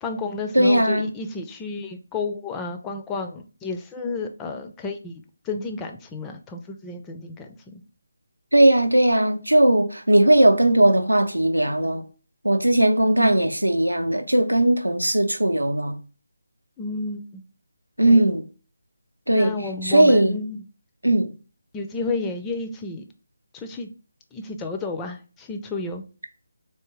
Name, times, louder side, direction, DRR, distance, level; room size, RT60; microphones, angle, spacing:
voice 1, 0.0-5.1 5.4-7.8 13.1-13.4 16.8-17.4 18.0-18.3 19.3-20.6 21.7-23.0 23.5-23.9 24.3-26.0, left 3 dB, 10° left, 0.4 m, -31 dB
voice 2, 0.5-1.1 8.5-12.0 12.4-16.0 18.0-18.4 19.3-19.5 19.8-20.4 21.0-21.3, right 1 dB, 90° right, 0.5 m, -18 dB
3.5 x 2.7 x 2.9 m
figure-of-eight pair, 155°, 0 cm